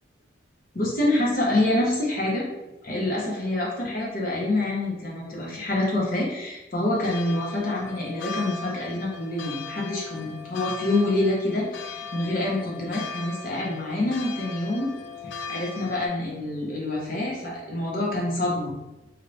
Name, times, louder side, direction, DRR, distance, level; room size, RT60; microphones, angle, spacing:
voice 1, 0.7-2.4 2.8-14.9 15.2-18.7, left 2 dB, 50° left, -3 dB, 0.9 m, -26 dB
sound 1, 6.9-16.1, left 5 dB, 80° left, 0.3 m, -38 dB
2.9 x 2.7 x 3.1 m, 1.0 s
head